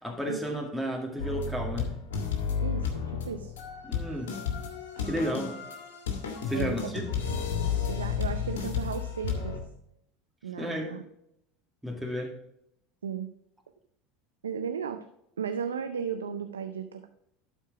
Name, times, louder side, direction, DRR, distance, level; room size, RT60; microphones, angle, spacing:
voice 1, 0.0-2.0 3.8-4.4 5.1-5.5 6.5-7.3 10.6-11.0 11.8-12.3, equal, 5° right, -1 dB, 2.2 m, -33 dB
sound 1, 1.2-9.6, left 6 dB, 75° left, 1.7 m, -32 dB
voice 2, 2.6-3.5 6.5-6.9 7.3-7.4 7.9-9.6 10.4-11.0 13.0-13.3 14.4-15.1 15.4-17.1, right 7 dB, 90° right, 8 dB, 0.5 m, -35 dB
11.5 x 4.6 x 4.8 m, 0.79 s
hypercardioid pair, 85°, 0 cm